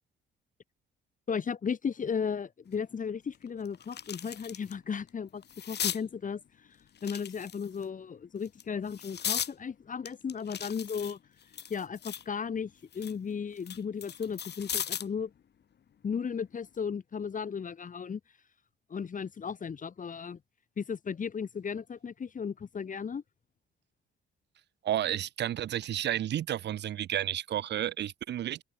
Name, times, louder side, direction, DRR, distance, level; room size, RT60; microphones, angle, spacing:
voice 1, 1.3-6.7 7.0-11.2 11.7-15.3 16.0-18.2 18.9-20.4 20.8-23.2, left 6 dB, 40° left, 2.1 m, -35 dB
sound 1, 2.7-2.8 3.3-4.7 5.1-6.0 7.0-7.8 8.4-9.5 10.1-12.3 12.7-15.2 16.5-16.8, left 9 dB, 55° left, 3.4 m, -37 dB
voice 2, 24.8-28.6, right 11 dB, 60° right, 0.7 m, -31 dB
cardioid pair, 90°, 20 cm